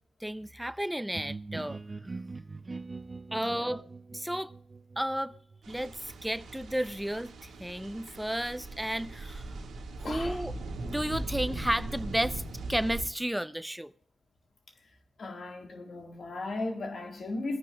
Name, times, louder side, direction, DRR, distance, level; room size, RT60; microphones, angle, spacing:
voice 1, 0.2-2.1 3.3-3.8 4.1-4.5 5.0-5.3 5.7-9.6 10.1-10.5 10.8-12.4 12.7-13.9, right 1 dB, 5° right, 0.5 m, -32 dB
sound 1, 1.1-6.8, right 3 dB, 40° right, 0.7 m, -43 dB
voice 2, 3.4-3.8 10.0-10.4 15.2-17.6, left 2 dB, 65° left, 1.7 m, -36 dB
sound 2, 5.6-13.0, right 2 dB, 90° right, 1.7 m, -39 dB
25.5 x 9.4 x 2.3 m
supercardioid pair, 45°, 0 cm